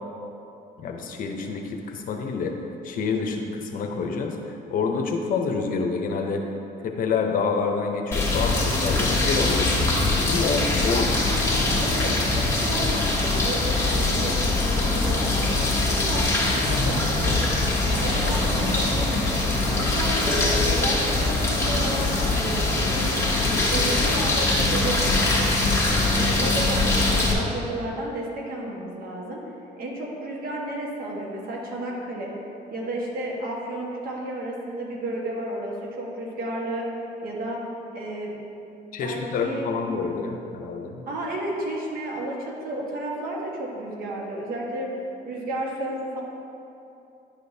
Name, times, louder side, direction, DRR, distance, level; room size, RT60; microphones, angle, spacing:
voice 1, 0.8-2.5 2.8-6.4 6.8-9.7 10.2-11.1 38.9-41.0, left 4 dB, 55° left, 3 dB, 0.7 m, -27 dB
sound 1, 8.1-27.3, left 2 dB, 15° left, 1.4 m, -22 dB
voice 2, 10.9-14.3 14.6-15.4 15.8-17.4 17.8-19.4 19.8-25.5 26.0-29.4 29.8-32.3 32.7-36.9 37.2-37.6 37.9-38.4 39.0-39.7 41.1-44.9 45.2-46.2, right 1 dB, 60° right, -2 dB, 1.4 m, -32 dB
10.0 x 5.0 x 2.7 m, 2.8 s
cardioid pair, 110°, 17 cm